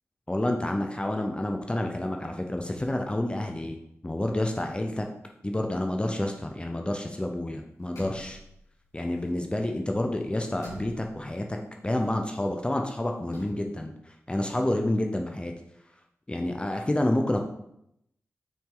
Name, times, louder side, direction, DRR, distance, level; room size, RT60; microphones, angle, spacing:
voice 1, 0.3-5.1 5.4-8.4 8.9-11.6 11.8-15.5 16.3-17.4, left 1 dB, 20° left, 3 dB, 0.6 m, -29 dB
sound 1, 5.7-7.3 7.6-9.8 10.1-13.5, equal, 90° left, 2.4 m, -48 dB
5.9 x 4.2 x 3.8 m, 0.79 s
cardioid pair, 55°, 5 cm